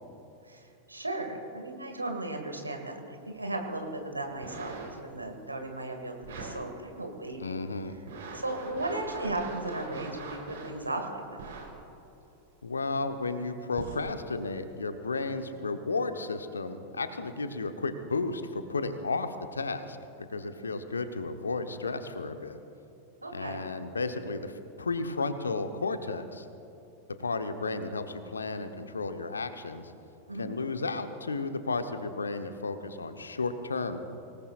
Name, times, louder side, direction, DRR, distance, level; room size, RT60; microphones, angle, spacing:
voice 1, 0.4-7.5 8.3-11.4 23.2-23.6 30.3-30.5, right 2 dB, 85° right, 3 dB, 2.1 m, -36 dB
sound 1, 4.3-5.1 6.2-6.5 7.1-7.2 7.8-10.8 11.4-11.7 12.6-12.7 13.7-14.1 14.7-14.8, right 4 dB, 60° right, 3.9 m, -42 dB
voice 2, 7.4-7.9 12.6-22.6 23.3-26.5 27.2-29.9 30.4-34.0, left 3 dB, 75° left, 8 dB, 1.0 m, -33 dB
25.0 x 18.5 x 2.5 m, 2.9 s
figure-of-eight pair, 90°, 0 cm